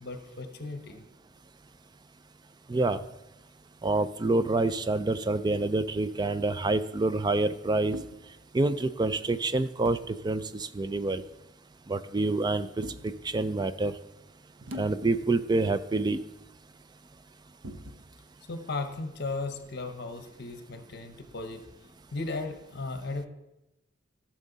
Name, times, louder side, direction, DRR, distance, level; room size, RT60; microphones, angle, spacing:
voice 1, 0.0-1.0 18.5-21.6 22.1-23.3, left 3 dB, 55° left, 8 dB, 0.8 m, -36 dB
voice 2, 3.8-8.0 8.5-11.2 11.9-12.7 13.0-13.9 14.8-16.2, right 2 dB, 20° right, 13 dB, 0.4 m, -27 dB
sound 1, 7.9-8.2 9.9-10.1 11.2-11.4 12.8-13.2 14.6-15.5 15.8-15.9 17.6-18.2, left 1 dB, 65° right, 0.8 m, -43 dB
15.0 x 6.4 x 3.9 m, 0.96 s
head